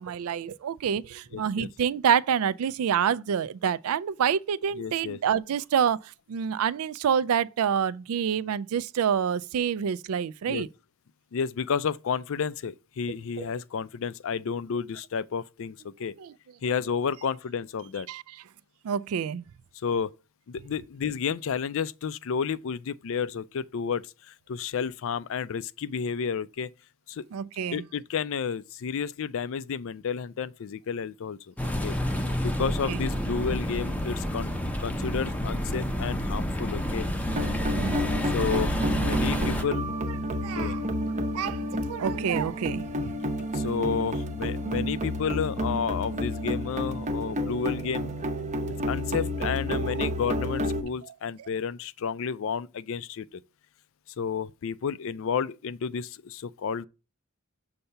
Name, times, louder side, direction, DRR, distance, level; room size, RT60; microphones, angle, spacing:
voice 1, 0.0-6.0 6.3-10.7 13.4-13.5 16.2-16.3 18.1-18.2 18.8-19.4 27.3-27.8 32.6-33.0 37.8-38.1 40.3-40.8 41.3-43.1 49.8-50.1, right 8 dB, 75° right, 0.4 m, -27 dB
voice 2, 1.3-1.7 4.8-5.2 10.5-10.7 11.3-16.1 16.6-18.1 19.7-20.1 20.5-26.7 27.1-27.2 27.7-31.5 31.8-32.0 32.4-34.5 34.8-37.1 38.3-39.8 40.5-40.8 43.5-48.1 48.8-53.4 54.2-56.9, left 6 dB, 65° left, 0.4 m, -31 dB
sound 1, 31.6-39.6, equal, 5° left, 0.6 m, -29 dB
sound 2, 37.3-50.8, equal, 35° right, 0.7 m, -30 dB
6.6 x 2.8 x 5.5 m
head